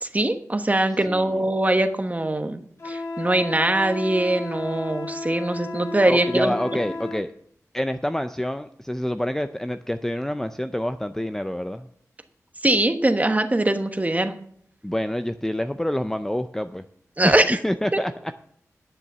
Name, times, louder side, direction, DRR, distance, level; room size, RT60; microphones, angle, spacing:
voice 1, 0.0-6.5 12.6-14.3 17.2-17.6 17.9-18.0, right 1 dB, 25° right, 7 dB, 1.2 m, -22 dB
voice 2, 1.1-1.4 6.1-7.3 7.7-11.9 14.8-16.8 17.2-17.4 17.6-18.3, left 1 dB, 5° left, 9 dB, 0.5 m, -27 dB
Wind instrument woodwind instrument, 2.8-7.3, left 3 dB, 50° left, 1.9 m, -33 dB
10.5 x 6.8 x 6.7 m, 0.63 s
wide cardioid pair, 60°, 6 cm